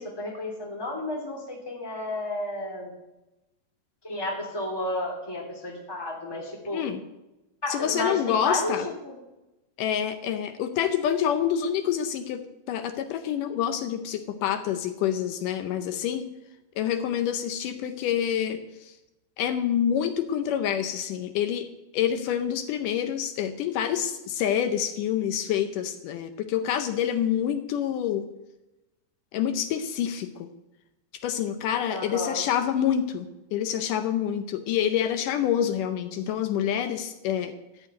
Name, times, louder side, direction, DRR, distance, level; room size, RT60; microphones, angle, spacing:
voice 1, 0.0-2.9 4.0-6.8 7.6-8.7 9.0-9.1 31.9-32.5, left 2 dB, 10° left, -1 dB, 2.3 m, -32 dB
voice 2, 7.7-8.9 9.8-12.4 12.7-16.3 16.8-18.9 19.4-21.7 21.9-28.3 29.3-30.5 31.2-37.5, left 9 dB, 80° left, 8 dB, 2.3 m, -27 dB
13.0 x 5.6 x 9.4 m, 0.97 s
omnidirectional pair, 3.8 m